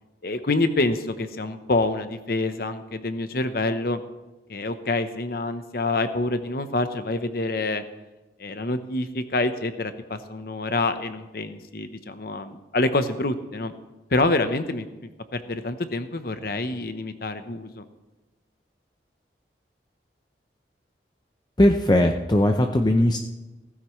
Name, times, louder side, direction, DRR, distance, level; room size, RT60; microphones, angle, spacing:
voice 1, 0.2-4.0 4.5-7.8 8.4-13.7 14.1-17.8, left 2 dB, 55° left, 10 dB, 0.9 m, -27 dB
voice 2, 21.6-23.2, left 1 dB, 25° left, 4 dB, 0.6 m, -19 dB
16.5 x 14.5 x 3.1 m, 1.1 s
head